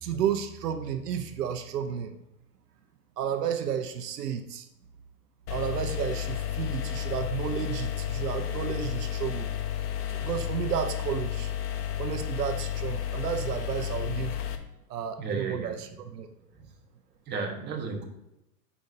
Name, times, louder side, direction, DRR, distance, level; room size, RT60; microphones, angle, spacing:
voice 1, 0.0-2.2 3.2-4.7 5.5-9.5 10.1-11.5 12.0-14.4 14.9-16.3, right 8 dB, 80° right, 8 dB, 0.9 m, -32 dB
sound 1, 5.5-14.6, left 10 dB, 70° left, 1.1 m, -32 dB
voice 2, 15.2-16.0 16.5-16.7 17.3-18.0, right 4 dB, 20° right, 2 dB, 1.2 m, -34 dB
8.8 x 5.4 x 2.7 m, 0.88 s
hypercardioid pair, 125°, 47 cm